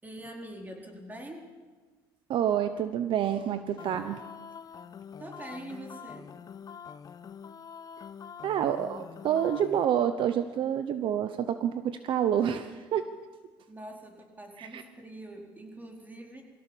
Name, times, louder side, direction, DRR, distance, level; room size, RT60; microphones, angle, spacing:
voice 1, 0.0-1.4 5.2-6.3 13.7-16.4, right 1 dB, 15° right, 1 dB, 4.5 m, -44 dB
voice 2, 2.3-4.2 8.4-13.1 14.6-14.8, right 9 dB, 55° right, 10 dB, 1.0 m, -28 dB
sound 1, 3.8-9.9, left 7 dB, 40° left, 1.0 m, -45 dB
22.5 x 16.5 x 7.3 m, 1.4 s
cardioid pair, 100°, 10 cm